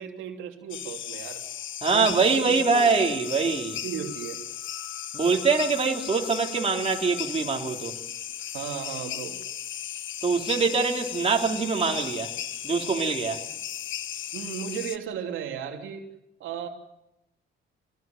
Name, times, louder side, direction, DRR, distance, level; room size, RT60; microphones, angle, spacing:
voice 1, 0.0-1.4 1.9-2.9 3.8-4.4 8.5-9.4 14.3-16.0 16.4-16.7, right 8 dB, 85° right, 3.1 m, -35 dB
sound 1, 0.7-15.0, left 11 dB, 75° left, 1.3 m, -36 dB
voice 2, 1.8-3.8 5.1-8.0 10.2-12.3 12.6-13.4, right 4 dB, 30° right, 3.7 m, -24 dB
26.5 x 19.0 x 9.4 m
cardioid pair, 90°, 20 cm